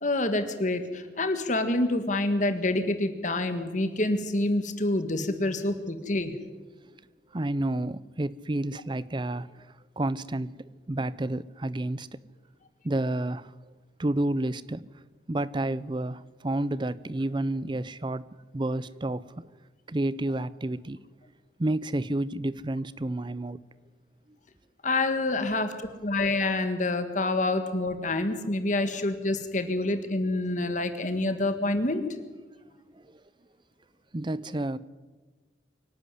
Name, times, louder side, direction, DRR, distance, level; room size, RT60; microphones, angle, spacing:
voice 1, 0.0-6.3 24.8-25.7 26.0-32.0, left 2 dB, 40° left, 1.7 m, -27 dB
voice 2, 7.3-9.7 10.0-10.6 10.9-12.1 12.8-13.5 14.0-14.9 15.3-18.3 18.5-19.5 19.9-21.0 21.6-23.6 28.8-28.9 33.0-33.2 34.1-34.8, right 1 dB, 25° right, 0.5 m, -30 dB
24.0 x 11.5 x 9.8 m
head